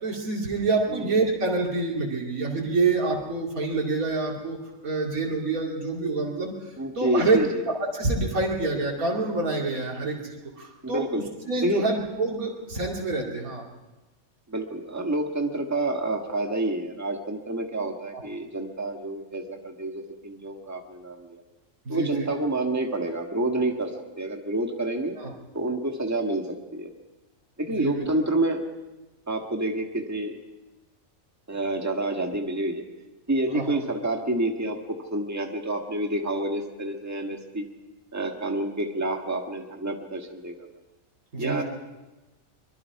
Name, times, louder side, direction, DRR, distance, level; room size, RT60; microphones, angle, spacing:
voice 1, 0.0-4.6 4.8-6.5 7.0-7.4 7.9-11.0 11.5-13.6 21.8-22.3 25.2-25.3 27.8-28.1 33.5-33.8 41.3-41.6, right 3 dB, 80° right, -2 dB, 3.0 m, -27 dB
voice 2, 6.8-7.6 10.8-11.2 11.6-11.9 14.5-21.4 21.9-23.9 24.2-25.2 25.5-26.9 27.6-28.6 29.3-30.4 31.5-32.9 33.3-37.7 38.1-40.7 41.4-41.6, right 1 dB, 10° right, 3 dB, 1.7 m, -28 dB
24.0 x 22.5 x 4.8 m, 1.1 s
omnidirectional pair, 1.5 m